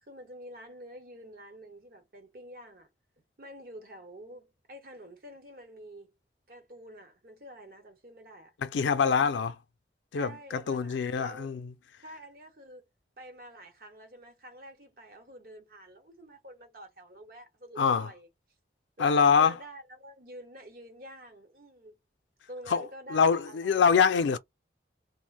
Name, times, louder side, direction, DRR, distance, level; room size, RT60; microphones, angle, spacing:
voice 1, 0.0-2.9 3.4-6.2 6.5-8.5 10.1-11.6 12.0-12.9 13.2-18.3 19.0-22.0 22.5-23.7, right 1 dB, 55° right, 0.9 m, -48 dB
voice 2, 8.6-9.6 10.1-11.7 17.8-18.1 19.0-19.5 22.7-22.8 23.1-24.4, left 6 dB, 90° left, 0.4 m, -24 dB
2.4 x 2.1 x 3.3 m
head